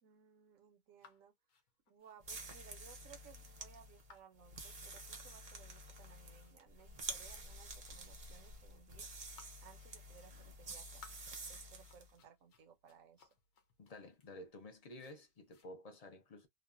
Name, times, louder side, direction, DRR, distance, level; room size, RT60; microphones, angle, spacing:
voice 1, 0.0-1.3 1.9-9.1 9.6-13.3, right 7 dB, 75° right, 1.1 m, -62 dB
sound 1, 1.0-15.7, left 7 dB, 75° left, 1.1 m, -66 dB
sound 2, 2.2-12.1, right 2 dB, 45° right, 0.7 m, -49 dB
voice 2, 13.8-16.5, left 1 dB, 45° left, 0.5 m, -52 dB
3.1 x 2.1 x 2.3 m
omnidirectional pair, 1.4 m